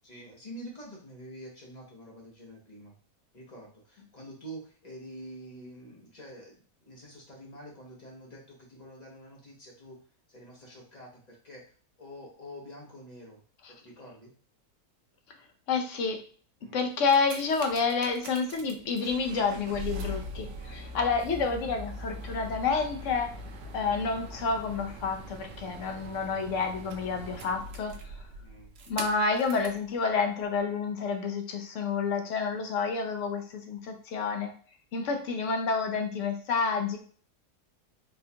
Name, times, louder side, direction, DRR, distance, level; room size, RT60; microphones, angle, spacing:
voice 1, 0.0-2.9 3.3-10.0 10.3-11.6 12.0-14.3 16.6-16.9 28.4-28.8, equal, 35° left, -2 dB, 0.8 m, -47 dB
voice 2, 15.7-16.2 16.7-23.4 23.7-28.0 28.9-34.5 34.9-37.0, left 4 dB, 65° left, 5 dB, 0.8 m, -29 dB
sound 1, 16.8-29.8 30.6-30.7, right 1 dB, 65° right, 0.8 m, -41 dB
4.2 x 2.3 x 2.7 m, 0.43 s
omnidirectional pair, 1.6 m